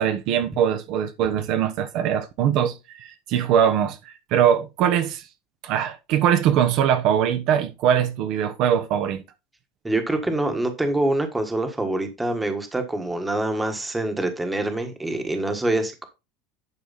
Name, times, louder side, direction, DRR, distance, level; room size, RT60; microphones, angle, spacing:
voice 1, 0.0-5.3 5.6-9.2, right 9 dB, 50° right, 1.0 m, -22 dB
voice 2, 9.8-16.1, right 2 dB, 5° right, 1.5 m, -25 dB
11.0 x 4.8 x 4.1 m
supercardioid pair, 160°, 0 cm